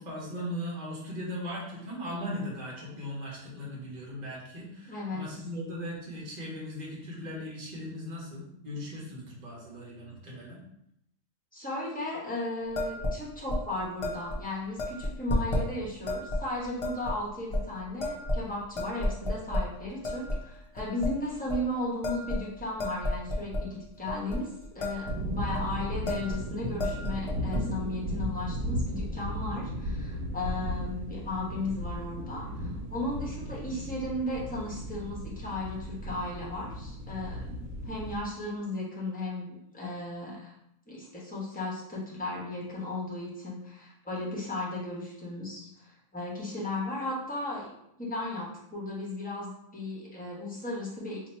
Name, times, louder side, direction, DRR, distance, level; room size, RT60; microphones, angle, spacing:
voice 1, 0.0-10.6, equal, 35° right, -4 dB, 1.1 m, -38 dB
voice 2, 4.9-5.3 11.5-37.5 37.8-40.5 40.9-47.7 48.0-51.3, left 2 dB, 5° left, -5 dB, 0.9 m, -35 dB
sound 1, 12.7-13.2 13.5-13.6 14.0-14.4 14.8-15.6 16.1-16.4 16.8-17.1 17.5-17.6 18.0-18.5 18.7-19.6 20.0-20.4 20.7-21.1 21.5-21.6 22.0-23.6 24.1-24.4 24.6-25.1 25.4-25.6 26.1-26.4 26.7-27.6, left 1 dB, 35° left, 0.5 m, -31 dB
sound 2, 25.1-38.2, equal, 80° right, 1.0 m, -35 dB
2.9 x 2.6 x 4.2 m, 0.78 s
omnidirectional pair, 1.4 m